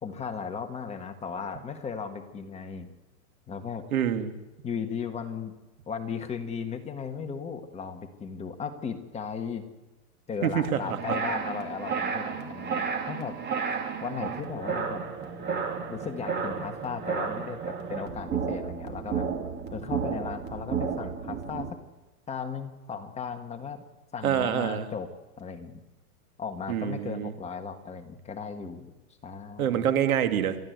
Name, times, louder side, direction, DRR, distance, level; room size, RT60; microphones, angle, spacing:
voice 1, 0.0-2.9 3.5-3.8 4.6-5.5 5.9-9.7 10.3-13.4 14.0-15.0 15.9-19.3 19.7-21.8 22.3-23.8 24.1-25.1 25.4-25.8 26.4-28.9 29.2-29.9, left 6 dB, 15° left, 5 dB, 1.6 m, -36 dB
voice 2, 3.9-4.4 10.4-11.0 24.2-24.9 26.7-27.3 29.6-30.6, right 9 dB, 70° right, 8 dB, 2.3 m, -26 dB
sound 1, 10.8-21.7, right 6 dB, 25° right, 2.7 m, -32 dB
29.5 x 13.5 x 8.1 m, 1.1 s
hypercardioid pair, 135°, 43 cm